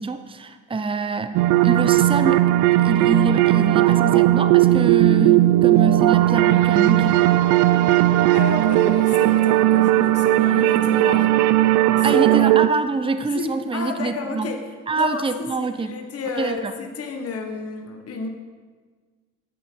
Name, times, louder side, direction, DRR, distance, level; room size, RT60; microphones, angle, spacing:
voice 1, 0.0-1.3 1.6-2.4 2.7-7.3 12.0-14.5 14.9-15.9 16.4-16.7, right 4 dB, 20° right, 10 dB, 0.7 m, -25 dB
sound 1, 1.3-12.7, right 15 dB, 80° right, 0.5 m, -17 dB
voice 2, 8.1-11.4 12.0-12.5 13.2-14.7 15.0-15.2 15.6-18.3, left 4 dB, 50° left, 3 dB, 1.4 m, -31 dB
10.5 x 8.0 x 4.5 m, 1.5 s
supercardioid pair, 70°, 30 cm